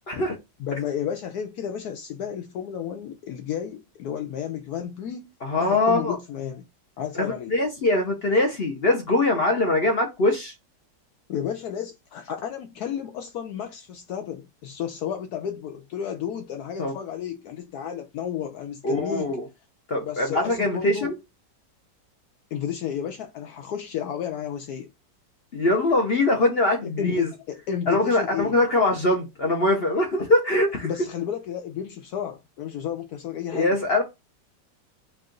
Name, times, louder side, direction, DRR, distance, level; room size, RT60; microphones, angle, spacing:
voice 1, 0.1-0.4 5.4-6.2 7.1-10.5 16.8-16.9 18.8-19.4 19.9-21.1 25.5-27.3 27.9-30.9 33.5-34.0, left 2 dB, 50° left, 0.8 m, -22 dB
voice 2, 0.6-6.7 7.0-7.5 11.3-19.3 20.0-21.1 22.5-24.9 26.8-28.5 30.8-33.8, left 9 dB, 70° left, 1.0 m, -32 dB
4.6 x 2.5 x 3.8 m
omnidirectional pair, 1.9 m